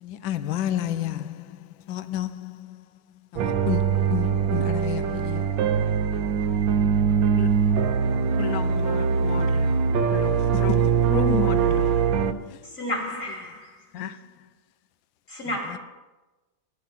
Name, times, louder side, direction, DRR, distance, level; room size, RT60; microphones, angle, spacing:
voice 1, 0.0-2.8 3.3-6.0 10.7-10.9 12.5-12.6 13.0-13.1 15.5-15.8, left 11 dB, 85° left, 1.4 m, -32 dB
sound 1, 3.4-12.3, right 6 dB, 85° right, 1.5 m, -22 dB
voice 2, 8.3-12.2 13.9-14.5, left 7 dB, 70° left, 0.9 m, -32 dB
voice 3, 12.8-13.8 15.3-15.8, left 1 dB, 45° left, 2.7 m, -31 dB
10.5 x 9.3 x 5.8 m
omnidirectional pair, 2.0 m